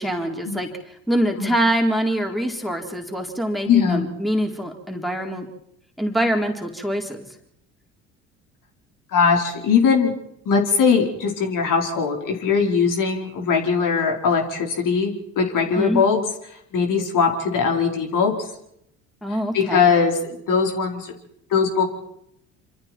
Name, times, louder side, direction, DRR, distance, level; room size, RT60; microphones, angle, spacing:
voice 1, 0.0-5.5 6.0-7.3 15.7-16.0 19.2-19.9, right 1 dB, ahead, 2 dB, 4.2 m, -24 dB
voice 2, 3.6-4.1 9.1-10.1 10.4-16.2 16.5-18.3 19.5-21.1 21.5-21.8, left 5 dB, 55° left, 2 dB, 4.6 m, -20 dB
27.0 x 26.0 x 4.6 m, 0.74 s
hypercardioid pair, 65°, 38 cm